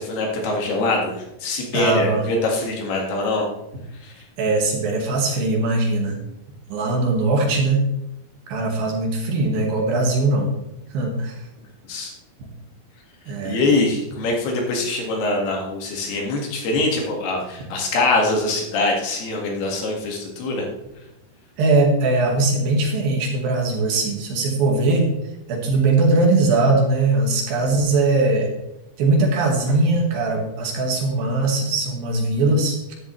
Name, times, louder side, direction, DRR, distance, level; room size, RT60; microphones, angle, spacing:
voice 1, 0.0-3.5 4.0-4.2 11.9-12.1 13.4-20.7, left 2 dB, 75° left, 0 dB, 4.0 m, -23 dB
voice 2, 1.7-2.2 4.4-6.2 6.7-7.9 8.5-10.5 10.9-11.4 13.3-13.6 21.6-25.1 25.5-28.5 29.0-32.9, right 2 dB, 65° right, 1 dB, 3.5 m, -20 dB
13.0 x 11.0 x 3.3 m, 0.90 s
omnidirectional pair, 4.6 m